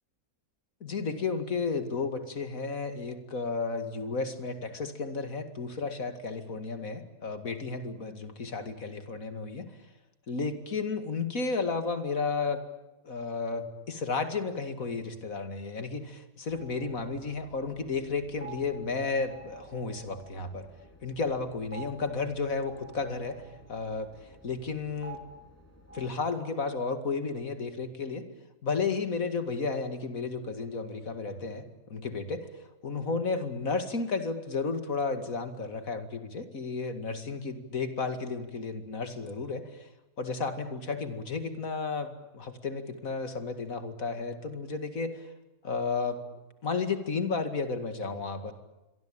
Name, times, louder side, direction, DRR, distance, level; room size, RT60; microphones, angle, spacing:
voice 1, 0.8-9.7 10.3-12.6 13.0-20.7 21.0-23.4 23.7-24.1 24.4-25.2 25.9-28.2 28.6-32.5 32.8-39.9 40.2-45.2 45.6-46.2 46.6-48.5, left 4 dB, 70° left, 8 dB, 2.7 m, -33 dB
sound 1, 16.5-26.2, right 3 dB, 10° left, 4.4 m, -51 dB
27.0 x 23.5 x 8.9 m, 0.99 s
omnidirectional pair, 1.5 m